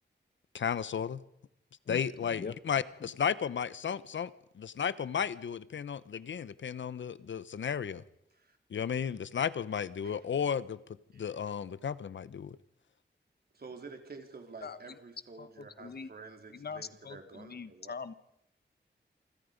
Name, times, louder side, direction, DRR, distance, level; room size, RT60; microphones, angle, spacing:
voice 1, 0.5-1.2 1.9-8.0 8.7-10.8 11.1-12.6, left 7 dB, 80° left, 16 dB, 0.9 m, -34 dB
voice 2, 1.8-2.6 3.0-3.1 14.6-15.0 15.4-16.1 16.5-18.1, left 5 dB, 55° left, 13 dB, 1.2 m, -43 dB
voice 3, 13.5-17.9, right 4 dB, 55° right, 4 dB, 3.7 m, -49 dB
28.0 x 25.5 x 5.3 m, 0.79 s
wide cardioid pair, 115°, 19 cm